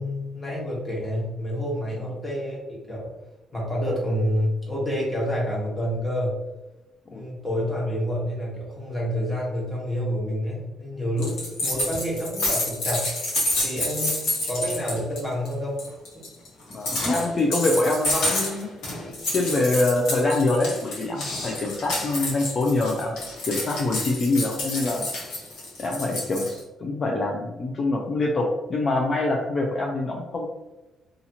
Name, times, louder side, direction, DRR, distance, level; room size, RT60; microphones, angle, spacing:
voice 1, 0.0-3.1 3.5-6.3 7.1-11.3 11.6-13.1 13.6-15.8 16.1-16.2, equal, 15° left, -4 dB, 1.2 m, -28 dB
sound 1, 11.2-15.2 15.4-15.5 15.8-26.6, left 1 dB, 80° left, 1.1 m, -29 dB
voice 2, 16.7-18.7 19.3-23.1 23.5-25.1 25.8-30.5, left 2 dB, 45° left, 0 dB, 0.4 m, -25 dB
2.7 x 2.4 x 2.7 m, 1.1 s
cardioid pair, 90°, 0 cm